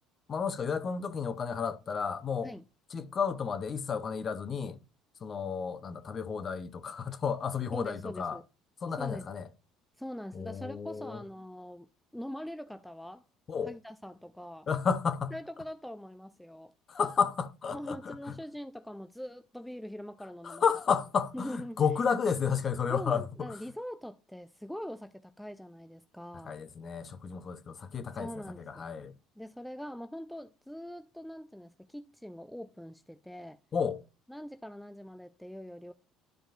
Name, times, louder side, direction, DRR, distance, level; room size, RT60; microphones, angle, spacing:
voice 1, 0.3-2.5 2.9-4.8 5.2-8.4 8.8-9.5 10.3-11.2 13.5-13.7 14.7-15.3 16.9-18.3 20.4-23.6 26.4-29.1 33.7-34.0, left 6 dB, 40° left, 0.7 m, -32 dB
voice 2, 7.7-8.4 9.0-9.3 10.0-13.2 13.7-14.7 15.3-16.7 17.7-20.6 21.3-21.8 22.9-26.5 28.1-28.9 29.4-33.6 34.3-35.9, equal, ahead, 0.4 m, -43 dB
12.0 x 5.0 x 2.5 m
supercardioid pair, 100°, 0 cm